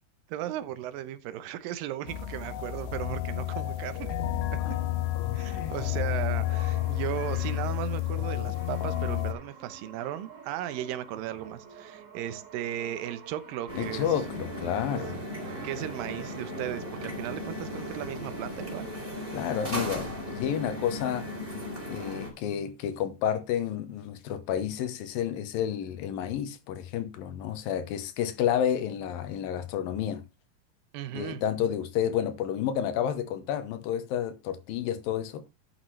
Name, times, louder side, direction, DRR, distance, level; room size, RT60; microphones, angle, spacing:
voice 1, 0.3-4.2 4.5-4.6 5.3-14.1 15.1-15.2 15.6-18.9 30.9-31.4, right 12 dB, 75° right, 2.4 m, -36 dB
sound 1, 2.1-9.3, left 14 dB, 85° left, 3.1 m, -30 dB
voice 2, 5.4-5.8 13.8-15.2 19.3-21.3 21.9-30.2 31.1-35.4, left 9 dB, 70° left, 2.5 m, -30 dB
Brass instrument, 6.3-17.1, right 6 dB, 55° right, 4.2 m, -47 dB
sound 2, 13.7-22.3, equal, 15° right, 3.5 m, -37 dB
12.0 x 8.0 x 3.2 m
omnidirectional pair, 4.6 m